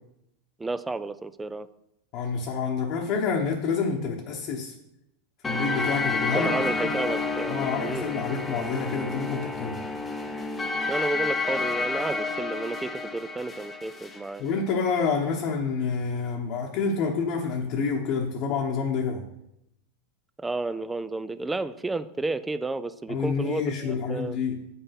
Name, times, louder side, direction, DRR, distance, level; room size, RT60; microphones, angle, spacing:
voice 1, 0.6-1.7 6.3-8.1 10.9-14.4 20.4-24.4, right 3 dB, 5° right, 14 dB, 0.3 m, -31 dB
voice 2, 2.1-4.7 5.5-6.5 6.8-6.9 7.5-9.8 14.4-19.2 23.1-24.6, left 5 dB, 40° left, 0 dB, 1.0 m, -28 dB
sound 1, 5.4-14.2, left 3 dB, 10° left, 0.7 m, -30 dB
8.1 x 5.6 x 5.7 m, 0.82 s
supercardioid pair, 155°, 0 cm